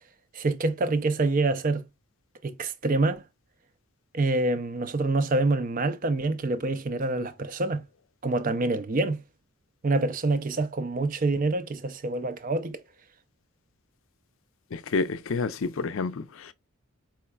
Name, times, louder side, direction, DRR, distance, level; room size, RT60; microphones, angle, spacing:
voice 1, 0.3-1.8 2.4-3.2 4.1-7.8 8.2-9.2 9.8-12.8, right 2 dB, 35° right, 0.4 m, -26 dB
voice 2, 14.7-16.5, left 4 dB, 65° left, 0.5 m, -29 dB
4.6 x 4.3 x 2.3 m
head